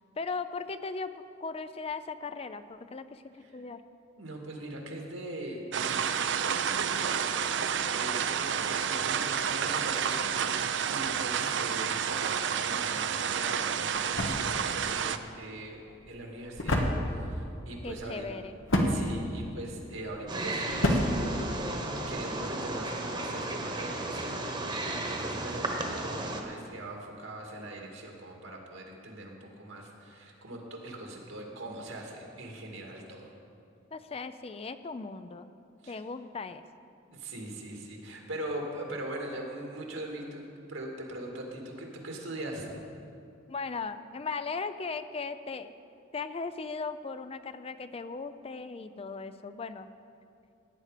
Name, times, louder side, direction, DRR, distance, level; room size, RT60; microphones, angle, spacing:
voice 1, 0.2-1.1 1.4-3.8 17.8-18.5 33.9-35.5 35.9-36.6 43.5-45.7 46.1-49.9, left 4 dB, 30° left, 11 dB, 0.4 m, -37 dB
voice 2, 4.2-15.8 16.1-16.9 17.2-18.3 18.9-21.4 22.1-33.3 35.8-36.0 37.1-42.8, right 1 dB, 80° right, 0 dB, 2.3 m, -41 dB
sound 1, 5.7-15.2, right 7 dB, 60° right, 0.5 m, -30 dB
sound 2, 13.3-22.1, left 1 dB, 80° left, 1.4 m, -32 dB
Wild animals, 20.3-26.4, right 2 dB, 25° right, 1.2 m, -34 dB
17.0 x 9.7 x 5.0 m, 2.6 s
head